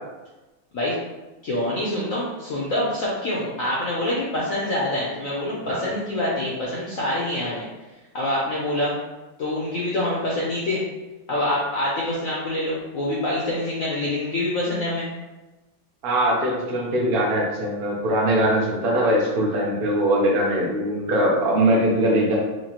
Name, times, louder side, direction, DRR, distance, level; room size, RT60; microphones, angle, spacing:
voice 1, 1.4-7.6 8.1-8.9 9.4-10.8 11.3-15.1, left 1 dB, 70° left, -6 dB, 0.7 m, -25 dB
voice 2, 16.0-22.3, right 1 dB, 70° right, -3 dB, 0.5 m, -21 dB
4.6 x 2.5 x 2.9 m, 1.1 s
omnidirectional pair, 2.3 m